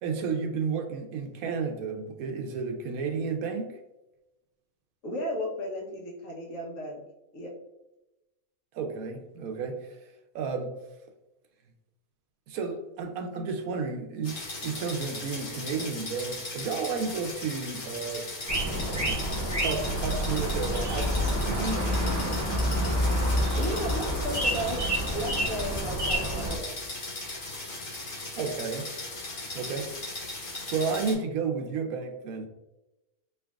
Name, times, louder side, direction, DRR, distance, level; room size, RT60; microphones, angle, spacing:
voice 1, 0.0-3.7 8.7-10.1 10.3-10.7 12.5-18.3 18.9-19.3 19.5-21.9 28.4-28.9 29.5-29.9 30.7-32.5, right 5 dB, 85° right, 4 dB, 1.0 m, -32 dB
voice 2, 5.0-7.0 7.3-7.5 23.6-24.8 25.1-26.7, equal, 65° left, -1 dB, 1.3 m, -34 dB
sound 1, 14.2-31.1, left 2 dB, 85° left, 1.9 m, -38 dB
sound 2, 18.5-26.6, equal, 20° right, 0.6 m, -28 dB
4.4 x 3.3 x 2.3 m, 0.96 s
omnidirectional pair, 1.5 m